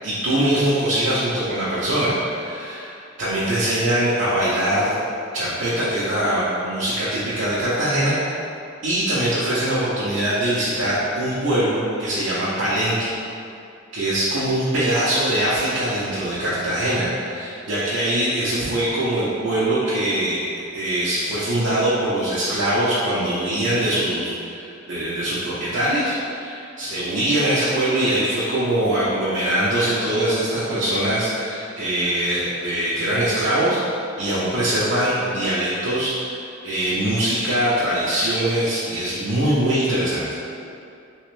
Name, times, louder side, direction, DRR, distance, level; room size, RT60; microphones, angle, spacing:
voice 1, 0.0-2.9 3.2-5.0 5.3-8.2 8.8-13.1 13.9-20.4 20.7-33.8 34.2-36.1 36.6-40.3, right 1 dB, 85° right, -10 dB, 0.7 m, -22 dB
3.3 x 3.1 x 3.2 m, 2.5 s
head